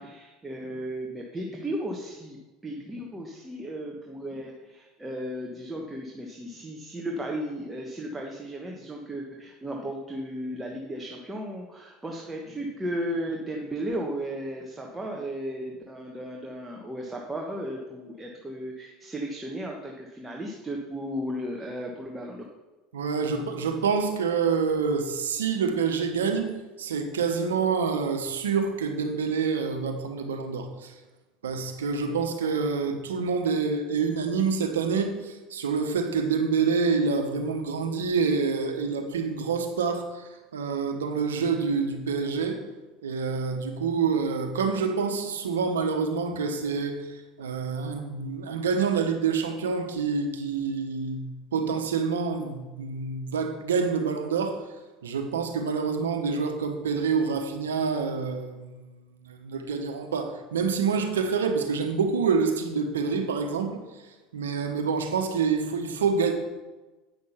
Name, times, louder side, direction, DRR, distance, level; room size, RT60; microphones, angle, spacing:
voice 1, 0.0-2.4 2.6-22.4, equal, 15° right, 0 dB, 1.3 m, -35 dB
voice 2, 22.9-26.5 26.8-30.9 31.4-42.6 43.0-47.1 47.4-54.6 55.0-58.9 59.2-63.8 64.3-66.3, right 5 dB, 90° right, 6 dB, 1.1 m, -27 dB
8.9 x 6.4 x 5.7 m, 1.2 s
hypercardioid pair, 85°, 0 cm